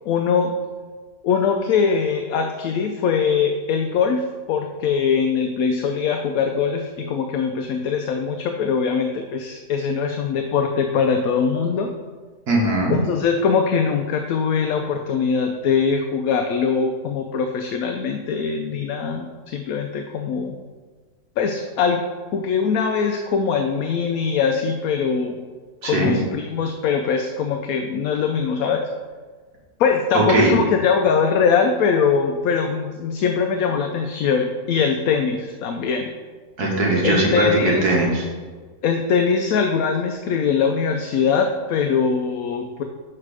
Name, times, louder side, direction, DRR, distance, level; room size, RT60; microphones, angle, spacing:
voice 1, 0.1-0.5 1.2-11.9 12.9-20.6 21.4-22.0 22.3-25.4 25.8-28.8 29.8-36.1 37.0-37.9 38.8-42.8, left 6 dB, 70° left, 4 dB, 0.9 m, -22 dB
voice 2, 12.5-12.9 25.8-26.1 30.1-30.5 36.6-38.3, right 2 dB, 70° right, -2 dB, 1.9 m, -19 dB
6.6 x 4.8 x 4.9 m, 1.5 s
omnidirectional pair, 1.7 m